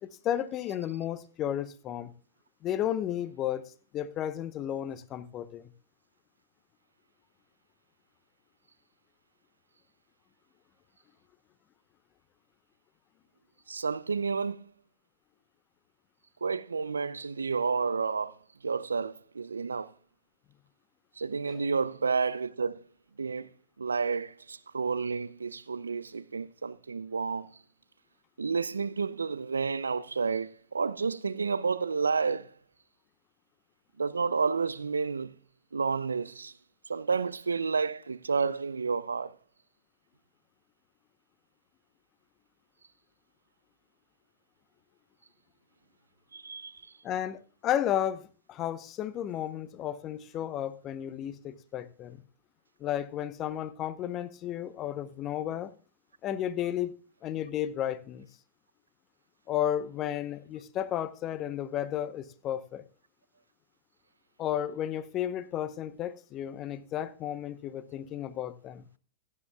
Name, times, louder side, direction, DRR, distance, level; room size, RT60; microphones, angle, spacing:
voice 1, 0.0-2.1 2.6-5.7 21.5-21.6 47.0-52.2 52.8-55.7 56.2-56.9 57.2-58.3 59.5-62.8 64.4-68.9, left 11 dB, 35° left, 0.8 m, -33 dB
voice 2, 13.7-14.6 16.4-19.9 21.2-22.8 23.2-23.5 23.8-27.5 28.4-32.5 34.0-35.3 35.7-36.5 36.9-39.3 46.3-46.9, right 5 dB, 85° right, 0.4 m, -30 dB
15.5 x 9.8 x 2.3 m
figure-of-eight pair, 100°, 0 cm